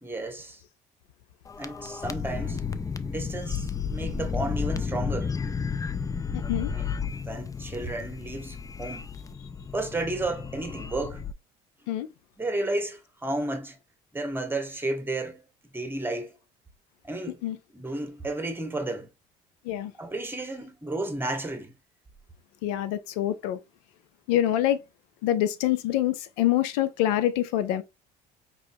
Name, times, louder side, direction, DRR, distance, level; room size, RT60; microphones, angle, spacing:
voice 1, 0.0-0.6 1.6-2.6 3.0-5.3 6.7-9.1 9.7-11.2 12.4-13.8 14.1-15.4 15.7-16.3 17.0-17.4 17.7-19.1 19.9-21.7, right 2 dB, 10° right, 1.2 m, -32 dB
sound 1, 1.5-11.3, left 6 dB, 15° left, 0.4 m, -32 dB
voice 2, 6.3-6.7 11.9-12.1 17.4-17.6 19.6-19.9 22.6-23.6 24.3-24.8 25.2-27.8, left 12 dB, 90° left, 0.5 m, -25 dB
4.9 x 2.9 x 2.6 m
supercardioid pair, 80°, 19 cm